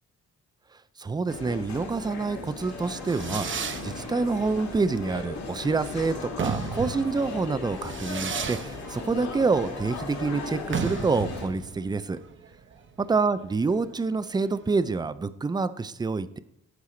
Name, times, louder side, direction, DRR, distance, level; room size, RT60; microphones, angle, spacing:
voice 1, 1.0-12.2 13.0-16.4, right 4 dB, 15° right, 14 dB, 0.4 m, -27 dB
sound 1, 1.3-11.5, left 4 dB, 65° left, 2.1 m, -37 dB
Fireworks, 2.7-14.9, right 6 dB, 40° right, 0.9 m, -36 dB
14.0 x 4.7 x 3.1 m, 0.83 s
cardioid pair, 90°, 30 cm